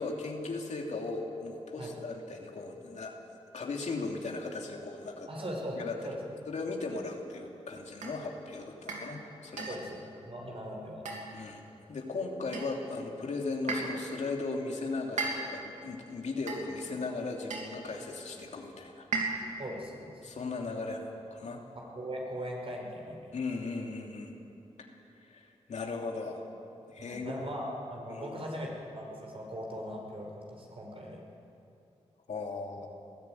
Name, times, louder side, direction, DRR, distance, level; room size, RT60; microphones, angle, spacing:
voice 1, 0.0-3.1 3.5-5.3 5.8-6.0 6.5-9.8 11.3-11.6 11.9-19.1 20.2-21.6 23.3-24.3 24.8-24.9 25.2-26.4 26.9-27.4 28.1-28.4 32.3-32.9, left 3 dB, 70° left, 1 dB, 2.9 m, -37 dB
voice 2, 5.3-6.2 9.7-11.1 19.6-20.2 21.7-23.3 27.0-31.2, equal, 50° right, 0 dB, 6.0 m, -40 dB
sound 1, 8.0-8.2 8.9-9.1 9.6-9.9 11.0-11.5 12.5-12.9 13.7-14.1 15.2-15.7 16.5-16.9 17.5-17.8 19.1-19.6, right 3 dB, 85° right, 2.9 m, -36 dB
21.0 x 14.5 x 9.4 m, 2.7 s
cardioid pair, 50°, 12 cm